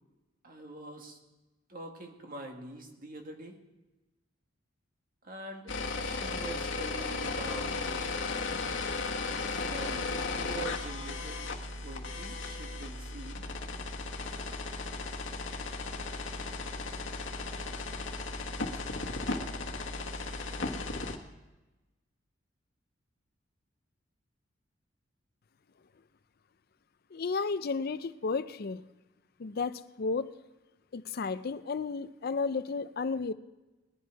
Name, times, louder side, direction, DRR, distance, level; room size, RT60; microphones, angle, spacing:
voice 1, 0.4-1.2 1.7-3.6 5.2-5.7 6.0-7.7 9.5-11.5 11.8-13.4, right 2 dB, 45° right, 3 dB, 1.8 m, -44 dB
sound 1, 5.7-21.2, left 3 dB, 65° left, 1.3 m, -35 dB
voice 2, 27.1-28.8 29.4-30.3 30.9-33.3, left 4 dB, 50° left, 14 dB, 0.5 m, -33 dB
19.5 x 11.0 x 4.6 m, 1.1 s
head